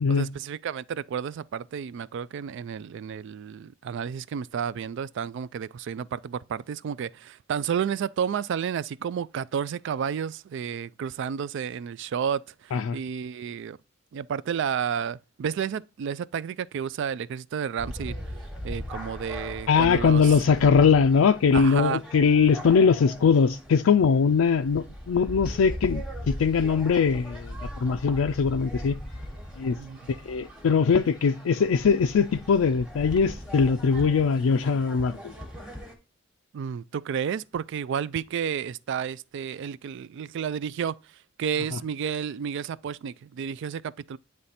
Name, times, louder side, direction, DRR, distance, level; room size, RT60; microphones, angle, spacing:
voice 1, 0.1-13.8 14.1-18.2 18.6-20.3 21.5-22.0 29.8-30.0 36.5-41.0 41.4-44.2, right 7 dB, 60° right, 0.3 m, -31 dB
sound 1, 17.8-36.0, equal, 5° right, 1.2 m, -39 dB
voice 2, 19.7-27.6 27.8-29.0 29.6-29.8 30.1-35.3, left 5 dB, 80° left, 0.4 m, -21 dB
9.4 x 3.2 x 4.1 m
head